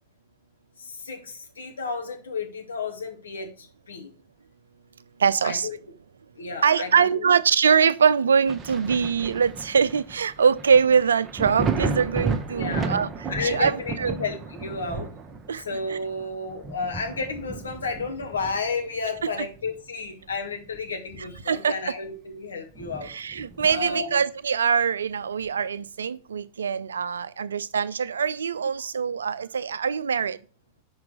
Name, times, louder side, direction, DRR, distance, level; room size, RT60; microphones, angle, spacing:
voice 1, 0.8-4.1 5.4-5.8 6.4-7.3 12.5-12.9 13.3-15.1 15.6-23.1 23.7-24.2 28.8-28.9, left 4 dB, 70° left, 1.4 m, -32 dB
voice 2, 5.2-5.7 6.6-13.1 13.4-14.1 15.5-15.6 15.9-16.0 19.4-19.5 21.5-21.9 23.0-30.4, right 6 dB, 70° right, 0.4 m, -23 dB
Thunder, 8.5-19.8 20.2-21.7 22.1-22.2 22.7-24.0 25.5-25.6, right 4 dB, 20° right, 0.8 m, -33 dB
5.9 x 4.8 x 6.2 m
figure-of-eight pair, 90°, 0 cm